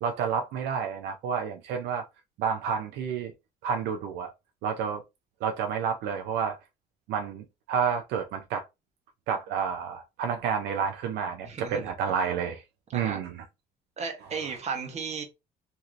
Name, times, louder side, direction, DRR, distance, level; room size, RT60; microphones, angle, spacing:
voice 1, 0.0-2.1 2.4-3.3 3.6-4.3 4.6-5.0 5.4-6.6 7.1-8.6 9.3-12.6 12.9-13.4, right 7 dB, 80° right, 0.5 m, -30 dB
voice 2, 11.4-11.9 12.9-13.2 14.0-15.2, right 5 dB, 40° right, 1.1 m, -34 dB
3.0 x 2.8 x 2.5 m
cardioid pair, 110°, 17 cm